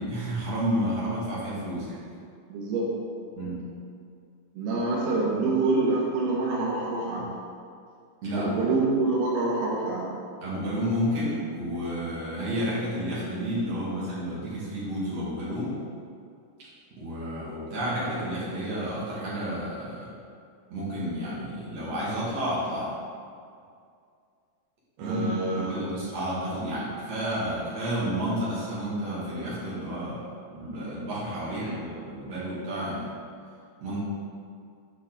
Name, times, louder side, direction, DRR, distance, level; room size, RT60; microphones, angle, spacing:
voice 1, 0.0-2.0 3.4-3.6 7.2-7.3 8.2-8.6 10.4-15.7 17.0-20.1 20.7-22.9 25.0-30.2 30.5-33.1 33.8-34.0, equal, 50° right, -8 dB, 2.3 m, -31 dB
voice 2, 2.5-2.9 4.5-7.3 8.3-10.1 25.0-25.8 31.6-31.8, right 3 dB, 70° right, -4 dB, 3.1 m, -26 dB
8.5 x 5.4 x 3.9 m, 2.3 s
omnidirectional pair, 5.1 m